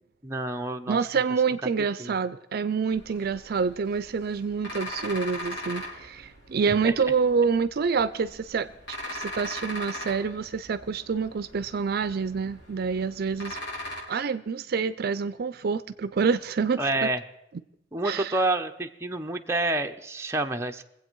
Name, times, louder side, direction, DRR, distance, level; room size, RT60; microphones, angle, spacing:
voice 1, 0.2-1.2 2.0-2.1 6.7-6.9 16.8-17.2 17.9-20.8, right 2 dB, 15° right, 0.7 m, -28 dB
voice 2, 0.9-13.6 14.1-17.1 18.0-18.3, right 5 dB, 55° right, 0.4 m, -27 dB
sound 1, 2.9-14.0, left 1 dB, 65° left, 4.6 m, -40 dB
23.0 x 8.1 x 4.6 m
head